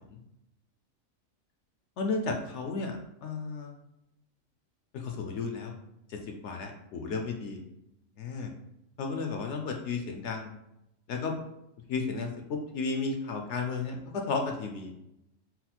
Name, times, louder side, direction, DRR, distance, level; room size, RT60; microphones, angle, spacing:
voice 1, 2.0-3.8 4.9-5.7 6.1-7.6 8.2-8.5 9.0-10.5 11.1-11.4 11.9-14.9, left 4 dB, 65° left, 3 dB, 0.8 m, -33 dB
4.0 x 2.1 x 4.2 m, 0.85 s
omnidirectional pair, 1.4 m